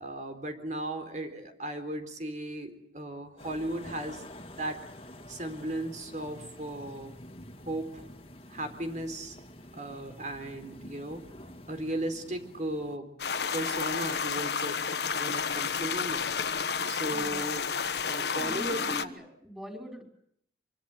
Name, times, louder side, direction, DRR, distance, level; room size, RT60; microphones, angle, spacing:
voice 1, 0.0-4.8 5.3-7.1 7.7-8.0 8.5-9.4 9.7-11.3 11.7-13.1 13.5-14.8 15.2-16.4 16.9-17.6 18.1-19.1, right 1 dB, 45° right, 7 dB, 4.0 m, -36 dB
sound 1, 3.4-13.0, left 1 dB, 30° left, 2.7 m, -48 dB
sound 2, 13.2-19.0, left 6 dB, 65° left, 1.3 m, -31 dB
voice 2, 18.4-20.0, equal, 5° right, 3 dB, 6.1 m, -42 dB
25.5 x 24.5 x 8.0 m, 0.69 s
head